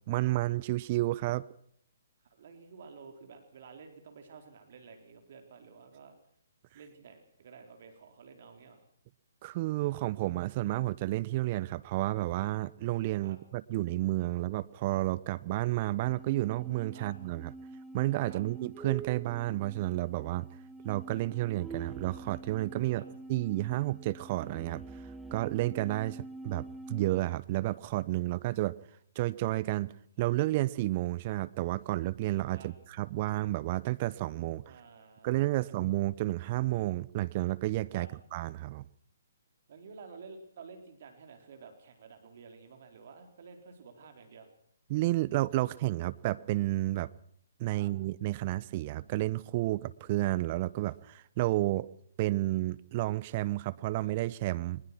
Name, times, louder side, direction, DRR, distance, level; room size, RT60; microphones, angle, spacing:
voice 1, 0.1-1.4 9.4-17.5 17.9-20.5 20.8-24.8 25.3-28.8 29.1-29.9 30.2-34.6 35.2-38.8 44.9-47.1 47.6-51.9 52.2-54.8, right 17 dB, 35° right, 0.9 m, -31 dB
voice 2, 2.2-6.1 6.7-8.8 13.2-13.4 16.9-17.1 18.3-18.4 22.9-23.1 32.5-32.7 34.6-35.7 37.9-38.1 39.7-44.5 47.7-47.9, right 5 dB, 50° right, 4.1 m, -51 dB
sound 1, 16.0-27.2, right 3 dB, 5° right, 1.5 m, -46 dB
23.5 x 20.5 x 6.2 m
figure-of-eight pair, 130°, 0 cm